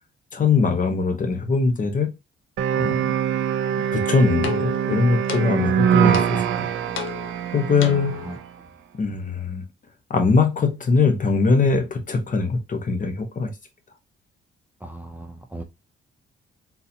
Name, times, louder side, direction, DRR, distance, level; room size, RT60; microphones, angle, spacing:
voice 1, 0.3-2.1 2.7-3.1 3.9-6.6 7.5-8.3 9.0-9.6 10.1-13.5, left 4 dB, 40° left, 1.0 m, -21 dB
sound 1, 2.6-8.5, right 9 dB, 80° right, 0.5 m, -23 dB
sound 2, 3.8-8.4, left 10 dB, 80° left, 0.7 m, -34 dB
voice 2, 14.8-15.6, right 2 dB, 10° right, 0.5 m, -37 dB
3.8 x 2.8 x 2.7 m
cardioid pair, 90°, 20 cm